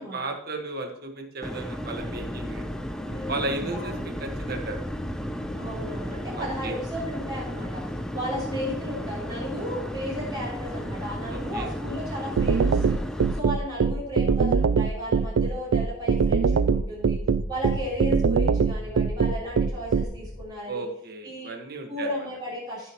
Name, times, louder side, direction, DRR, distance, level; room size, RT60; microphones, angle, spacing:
voice 1, 0.0-2.7 3.3-4.8 6.3-6.8 11.3-11.7 20.7-22.1, right 2 dB, 50° right, 4 dB, 1.6 m, -34 dB
sound 1, 1.4-13.4, equal, 5° left, 0.5 m, -34 dB
sound 2, 2.0-20.5, equal, 40° left, 2.7 m, -43 dB
voice 2, 3.0-4.3 5.5-13.0 13.3-17.2 17.5-20.8 21.2-21.5 21.9-22.9, equal, 20° right, -8 dB, 4.0 m, -34 dB
sound 3, 12.4-20.0, right 5 dB, 90° right, 0.4 m, -21 dB
15.0 x 6.8 x 3.1 m, 0.71 s
head